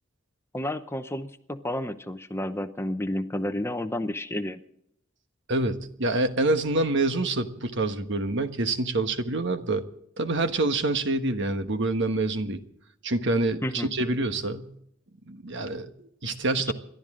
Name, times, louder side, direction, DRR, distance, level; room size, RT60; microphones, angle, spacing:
voice 1, 0.5-4.6 13.6-13.9, left 1 dB, 10° left, 9 dB, 0.7 m, -31 dB
voice 2, 5.5-9.8 10.2-12.6 13.0-14.7 15.3-16.7, right 2 dB, 60° right, 8 dB, 1.3 m, -26 dB
29.0 x 12.0 x 3.7 m, 0.72 s
head